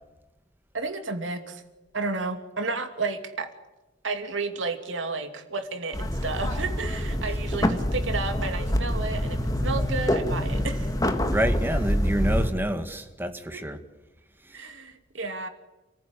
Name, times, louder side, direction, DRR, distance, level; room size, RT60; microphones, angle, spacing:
voice 1, 0.7-1.6 1.9-3.5 4.0-10.9 13.5-13.6 14.5-15.5, right 3 dB, 85° right, 6 dB, 2.8 m, -32 dB
sound 1, 5.9-12.5, equal, 20° left, 1.8 m, -26 dB
voice 2, 11.3-13.8 14.4-14.7, equal, 10° right, 7 dB, 1.9 m, -28 dB
28.5 x 15.0 x 10.0 m, 1.1 s
head